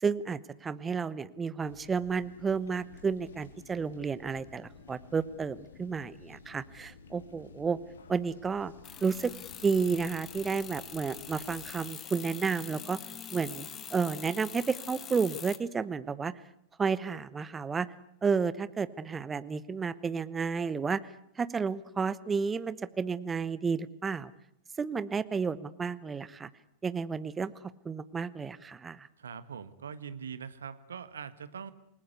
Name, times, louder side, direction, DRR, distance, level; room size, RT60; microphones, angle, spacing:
voice 1, 0.0-7.8 8.1-8.7 9.0-9.3 9.6-13.0 13.3-16.3 16.8-17.9 18.2-21.0 21.4-24.3 24.8-26.5 26.8-29.1, right 5 dB, 15° right, 16 dB, 1.0 m, -31 dB
sound 1, 1.6-11.9, left 5 dB, 65° left, 2.3 m, -53 dB
sound 2, 8.8-15.6, left 8 dB, 25° left, 1.7 m, -44 dB
voice 2, 29.2-31.7, right 7 dB, 70° right, 13 dB, 1.5 m, -42 dB
28.0 x 20.0 x 8.2 m, 0.78 s
figure-of-eight pair, 90°, 0 cm